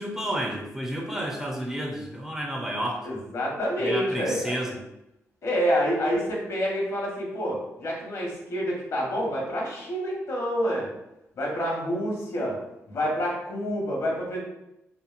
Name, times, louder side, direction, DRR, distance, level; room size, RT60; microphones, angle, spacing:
voice 1, 0.0-3.0 3.8-4.8, equal, 10° right, -1 dB, 0.6 m, -31 dB
voice 2, 3.0-4.6 5.4-10.9 11.3-12.6 12.9-14.4, equal, 60° left, -2 dB, 1.0 m, -28 dB
2.9 x 2.4 x 2.4 m, 0.87 s
cardioid pair, 80°, 6 cm